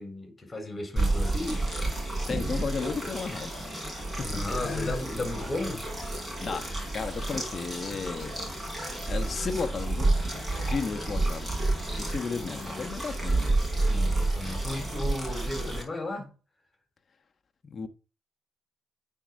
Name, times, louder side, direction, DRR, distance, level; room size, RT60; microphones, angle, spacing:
voice 1, 0.0-1.6 4.2-5.8 12.2-13.0 13.9-16.3, left 2 dB, 20° left, 3.8 m, -35 dB
sound 1, 1.0-15.8, right 2 dB, 15° right, 4.3 m, -30 dB
voice 2, 2.2-5.0 6.4-8.4 9.0-13.6 17.7-17.9, left 5 dB, 40° left, 1.2 m, -35 dB
9.1 x 4.6 x 5.2 m
cardioid pair, 90°, 0 cm